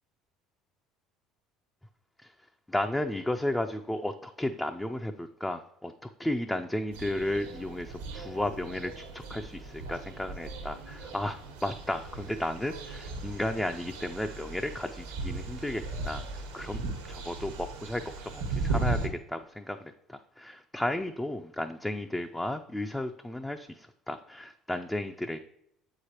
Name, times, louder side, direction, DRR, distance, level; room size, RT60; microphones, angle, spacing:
voice 1, 2.7-16.2 16.5-16.8 17.1-25.4, left 1 dB, 10° left, 6 dB, 0.4 m, -34 dB
sound 1, 6.9-19.1, right 3 dB, 85° right, 1.2 m, -37 dB
7.9 x 4.8 x 2.9 m, 0.76 s
hypercardioid pair, 65°, 0 cm